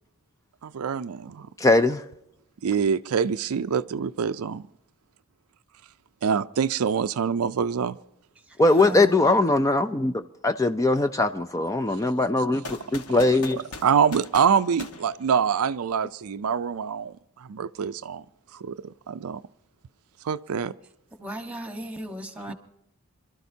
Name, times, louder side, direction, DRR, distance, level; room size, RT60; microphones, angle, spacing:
voice 1, 0.6-1.5 2.6-4.7 6.2-8.0 13.1-13.3 13.8-17.1 17.5-18.2 18.5-19.4 20.2-20.7 22.5-22.6, right 7 dB, 75° right, 0.4 m, -25 dB
voice 2, 1.6-2.0 8.6-13.6, left 2 dB, 15° left, 0.4 m, -21 dB
voice 3, 8.8-9.3 21.2-22.5, equal, 5° right, 1.3 m, -36 dB
sound 1, 12.6-15.8, left 3 dB, 80° left, 1.4 m, -41 dB
26.0 x 13.0 x 2.8 m
head